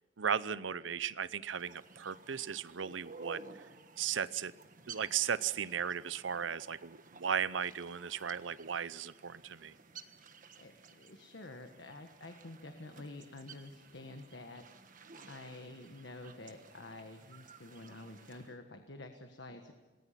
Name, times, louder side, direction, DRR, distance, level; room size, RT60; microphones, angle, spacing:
voice 1, 0.2-3.4 4.0-4.5 4.9-9.7, right 7 dB, 85° right, 17 dB, 0.7 m, -36 dB
sound 1, 1.5-18.5, right 4 dB, 45° right, 1.4 m, -55 dB
voice 2, 10.6-14.6 15.3-19.7, left 2 dB, 70° left, 6 dB, 1.5 m, -49 dB
27.5 x 19.5 x 5.8 m, 1.3 s
head